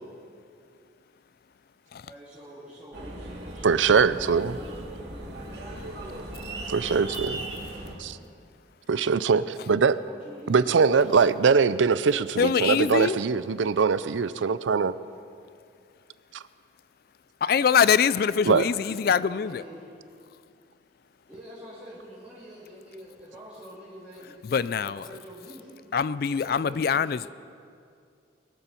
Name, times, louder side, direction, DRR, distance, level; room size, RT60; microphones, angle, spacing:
voice 1, 1.9-6.4 9.9-11.1 18.8-19.9 21.3-25.7 26.3-27.3, equal, 5° right, -12 dB, 3.2 m, -46 dB
sound 1, 2.9-7.9, right 2 dB, 60° right, 3.0 m, -38 dB
voice 2, 3.6-4.5 6.7-7.4 8.0-8.2 8.9-10.0 10.5-14.9 18.5-18.6, right 5 dB, 80° right, 15 dB, 0.5 m, -22 dB
voice 3, 12.4-13.2 17.4-19.6 24.5-25.0 25.9-27.2, left 7 dB, 50° left, 17 dB, 0.3 m, -23 dB
22.5 x 12.5 x 4.5 m, 2.3 s
head